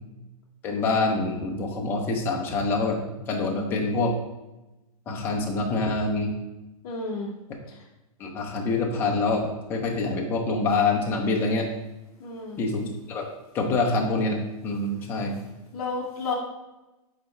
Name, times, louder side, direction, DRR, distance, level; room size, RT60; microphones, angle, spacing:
voice 1, 0.6-3.0 3.3-4.1 5.1-6.3 8.2-9.4 9.7-11.7 12.6-13.3 13.5-15.4, left 3 dB, 10° left, 0 dB, 0.6 m, -25 dB
voice 2, 6.8-7.3 12.2-12.6 15.7-16.3, left 3 dB, 35° left, -5 dB, 0.9 m, -31 dB
6.7 x 4.3 x 3.2 m, 1.0 s
hypercardioid pair, 170°, 18 cm